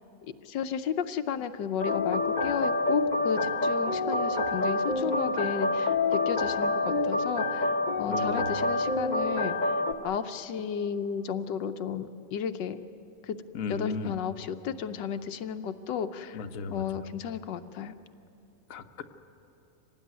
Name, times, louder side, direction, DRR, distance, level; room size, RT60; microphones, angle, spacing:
voice 1, 0.4-9.7 10.0-12.8 13.2-13.4 13.7-16.4 16.7-18.0, left 7 dB, 85° left, 9 dB, 1.5 m, -33 dB
sound 1, 1.8-9.9, left 2 dB, 30° left, 1.1 m, -27 dB
voice 2, 8.1-8.5 13.5-14.2 16.3-16.8 18.7-19.0, left 4 dB, 55° left, 7 dB, 1.3 m, -35 dB
25.5 x 18.5 x 9.5 m, 2.9 s
omnidirectional pair, 1.9 m